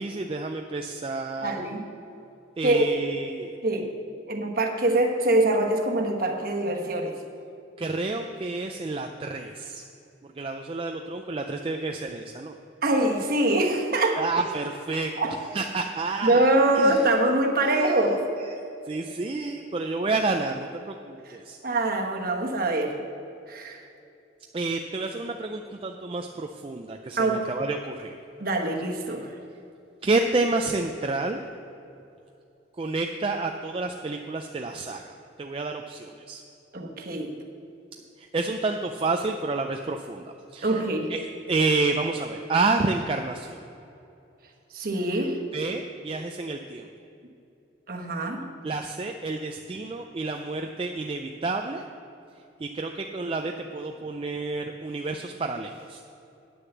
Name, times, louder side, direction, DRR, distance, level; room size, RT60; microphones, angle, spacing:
voice 1, 0.0-1.6 2.6-3.6 7.8-9.8 10.4-12.6 14.2-16.4 16.7-17.0 17.6-18.0 18.5-21.6 24.5-28.2 30.0-31.4 32.8-36.4 38.2-41.2 41.5-43.6 45.5-46.9 48.6-51.8 52.6-56.0, right 3 dB, 30° right, 4 dB, 0.3 m, -29 dB
voice 2, 1.4-1.8 2.6-2.9 3.6-3.9 4.3-7.1 12.8-14.2 15.2-15.3 16.2-18.2 21.3-21.4 21.6-23.0 23.5-23.8 27.2-27.4 28.4-29.2 36.7-37.3 40.6-41.1 44.7-45.4 47.9-48.4, right 2 dB, 50° right, 1 dB, 1.2 m, -24 dB
9.5 x 6.6 x 7.2 m, 2.7 s
head